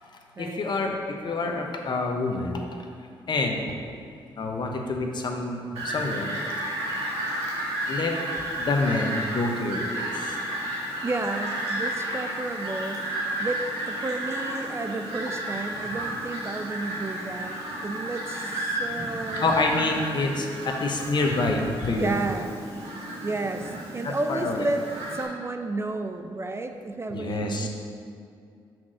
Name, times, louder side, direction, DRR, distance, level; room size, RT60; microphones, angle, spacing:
voice 1, 0.4-1.0 1.2-2.6 3.3-3.6 4.4-6.4 7.9-8.2 8.6-10.4 19.4-22.1 24.0-24.7 27.1-27.7, left 3 dB, 50° left, 2 dB, 0.9 m, -27 dB
Fowl, 5.8-25.2, right 1 dB, 85° right, 1.7 m, -32 dB
voice 2, 11.0-13.1 13.4-19.5 21.9-22.5 23.2-24.9 25.1-27.7, right 2 dB, 25° right, 6 dB, 0.4 m, -32 dB
6.0 x 3.8 x 6.2 m, 2.4 s
supercardioid pair, 65°, 10 cm